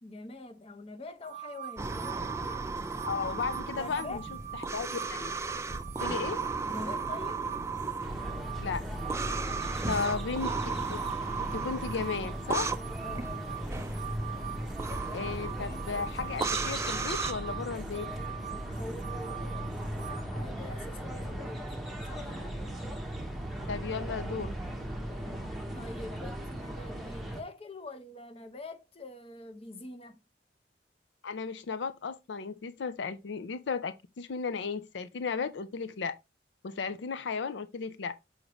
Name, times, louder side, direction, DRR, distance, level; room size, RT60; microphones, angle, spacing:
voice 1, 0.0-2.6 3.7-4.2 6.7-7.5 9.8-10.0 13.0-13.4 18.7-19.7 20.0-21.7 22.1-22.3 25.7-30.2, left 2 dB, 30° left, 0.6 m, -44 dB
sound 1, 1.2-20.3, right 11 dB, 40° right, 0.8 m, -44 dB
sound 2, 1.8-17.3, right 4 dB, 15° right, 0.4 m, -36 dB
voice 2, 3.0-4.2 4.7-5.3 6.0-6.4 8.6-8.8 9.9-10.5 10.9-11.0 11.4-12.7 15.1-18.1 23.7-24.5 31.2-36.2 36.6-38.1, left 5 dB, 75° left, 0.4 m, -34 dB
sound 3, 8.0-27.4, right 1 dB, ahead, 0.9 m, -38 dB
6.4 x 4.9 x 3.0 m
head